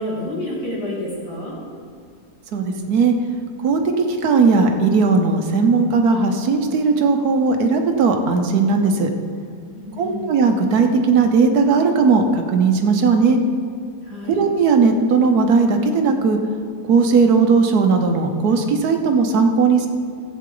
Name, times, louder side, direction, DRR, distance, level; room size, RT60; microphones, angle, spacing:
voice 1, 0.0-1.6 9.8-10.2 14.1-14.4, left 1 dB, 75° left, -6 dB, 3.4 m, -29 dB
voice 2, 2.5-3.1 3.6-3.8 4.2-9.1 10.0-13.4 14.3-16.4 16.9-19.9, right 4 dB, 70° right, 5 dB, 1.4 m, -17 dB
14.5 x 8.6 x 3.8 m, 2.3 s
omnidirectional pair, 1.7 m